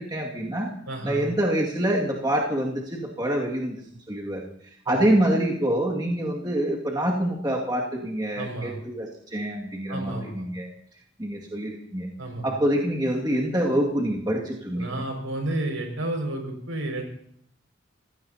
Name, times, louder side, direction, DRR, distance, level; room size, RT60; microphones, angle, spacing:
voice 1, 0.0-0.7 1.0-4.5 4.9-10.7 11.2-12.1 12.4-15.0, right 1 dB, 20° right, -2 dB, 2.2 m, -26 dB
voice 2, 0.9-1.2 4.9-5.0 8.4-8.8 9.9-10.5 12.2-12.5 14.7-17.0, right 1 dB, 85° right, 2 dB, 5.8 m, -31 dB
26.0 x 17.0 x 2.9 m, 0.68 s
head